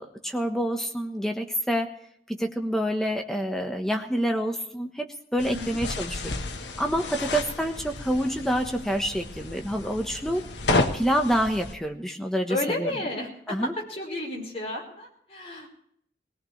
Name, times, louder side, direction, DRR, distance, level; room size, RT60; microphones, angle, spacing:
voice 1, 0.0-1.9 2.3-5.1 5.3-6.4 6.8-10.4 10.9-12.9 13.5-13.7, equal, 5° left, 3 dB, 1.2 m, -27 dB
sound 1, 5.4-11.8, left 2 dB, 90° left, 1.3 m, -31 dB
voice 2, 5.4-5.8 12.5-15.7, left 1 dB, 35° left, -1 dB, 5.0 m, -32 dB
21.0 x 18.0 x 3.3 m, 0.66 s
head